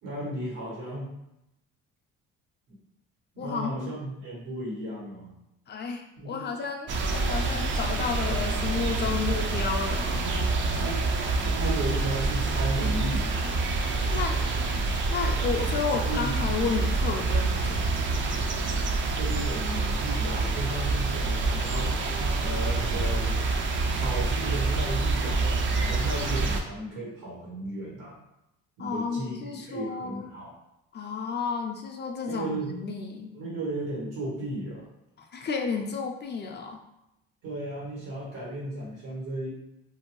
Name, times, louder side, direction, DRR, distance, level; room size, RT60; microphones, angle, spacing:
voice 1, 0.0-1.1 2.7-2.8 3.3-5.4 6.2-6.6 10.8-11.1 11.4-13.4 15.6-15.7 16.1-16.3 16.6-16.7 19.1-21.9 22.4-23.3 24.0-28.2 28.8-30.5 32.3-32.7 33.3-34.9 37.4-39.5, right 1 dB, 80° right, -5 dB, 1.4 m, -35 dB
voice 2, 3.4-3.9 5.7-10.2 14.1-14.4 15.1-17.8 28.8-30.3 30.9-33.4 35.2-36.8, left 5 dB, 35° left, 2 dB, 0.4 m, -32 dB
sound 1, 6.9-26.6, right 3 dB, 40° right, 0.4 m, -27 dB
2.6 x 2.1 x 3.0 m, 0.88 s
cardioid pair, 90°, 32 cm